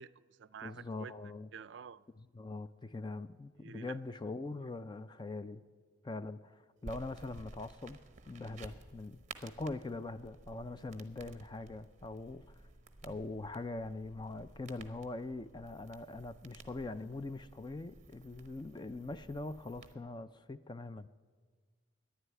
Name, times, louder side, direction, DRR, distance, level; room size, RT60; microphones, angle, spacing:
voice 1, 0.0-2.1 3.6-4.0, right 7 dB, 60° right, 0.4 m, -50 dB
voice 2, 0.6-1.5 2.3-5.6 6.0-8.0 8.3-12.6 13.0-21.1, left 2 dB, 20° left, 0.4 m, -42 dB
sound 1, 6.8-19.9, right 3 dB, 35° right, 0.9 m, -54 dB
11.5 x 10.0 x 9.5 m
head